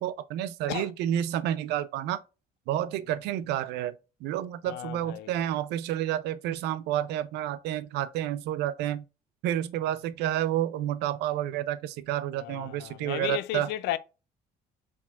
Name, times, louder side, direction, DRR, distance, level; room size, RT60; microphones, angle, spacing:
voice 1, 0.0-2.2 2.7-3.9 4.2-9.0 9.4-13.7, right 12 dB, 85° right, 0.5 m, -30 dB
voice 2, 4.7-5.3 12.4-14.0, left 14 dB, 85° left, 0.4 m, -34 dB
4.7 x 3.6 x 2.3 m
cardioid pair, 110°, 17 cm